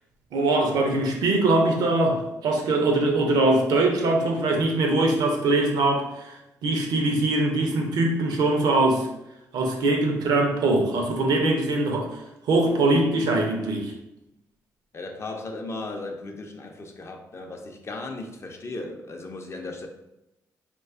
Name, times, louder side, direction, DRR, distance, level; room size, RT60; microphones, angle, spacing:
voice 1, 0.3-9.1 9.5-12.1 12.5-13.9, right 2 dB, 75° right, 2 dB, 0.5 m, -22 dB
voice 2, 14.9-19.9, left 2 dB, 40° left, 3 dB, 0.4 m, -36 dB
2.6 x 2.2 x 2.4 m, 0.88 s
supercardioid pair, 50°, 7 cm